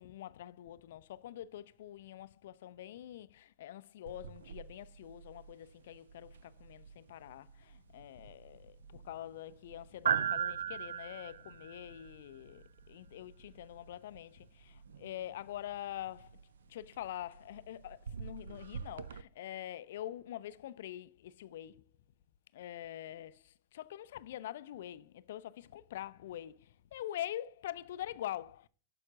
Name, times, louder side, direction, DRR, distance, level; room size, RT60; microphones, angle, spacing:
voice 1, 0.0-16.4 16.7-21.9 22.5-28.7, left 12 dB, 55° left, 0.4 m, -45 dB
sound 1, 4.1-19.2, right 8 dB, 65° right, 0.3 m, -42 dB
11.5 x 5.3 x 2.5 m
figure-of-eight pair, 90°, 0 cm